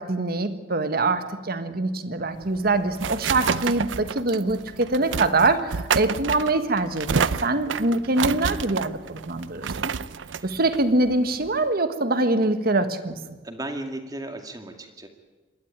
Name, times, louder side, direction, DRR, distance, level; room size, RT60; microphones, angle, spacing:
voice 1, 0.0-9.9 10.4-13.2, right 2 dB, 55° right, 10 dB, 1.5 m, -24 dB
sound 1, 2.4-11.7, right 6 dB, 85° right, 0.6 m, -29 dB
voice 2, 13.4-15.1, right 1 dB, 20° right, 5 dB, 2.2 m, -36 dB
27.0 x 12.0 x 8.9 m, 1.3 s
head